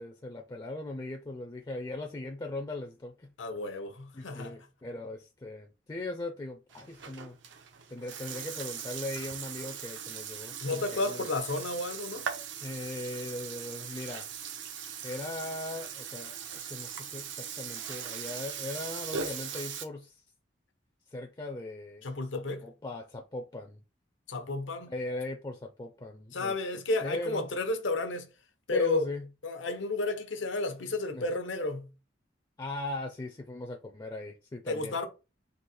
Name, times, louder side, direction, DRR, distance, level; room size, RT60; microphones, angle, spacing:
voice 1, 0.0-3.3 4.1-7.4 7.9-11.3 12.6-14.3 15.0-20.2 21.1-22.1 22.6-23.8 24.9-26.5 27.0-27.5 28.7-29.3 31.1-31.3 32.6-35.0, left 2 dB, 20° left, 0.4 m, -39 dB
voice 2, 3.4-4.6 10.6-12.3 22.0-22.6 24.3-24.9 26.3-28.3 28.7-29.1 29.4-31.9 34.7-35.0, left 2 dB, 85° left, 0.9 m, -32 dB
Burping eructation, 6.7-19.8, right 7 dB, 80° right, 0.7 m, -40 dB
3.9 x 2.8 x 4.2 m
head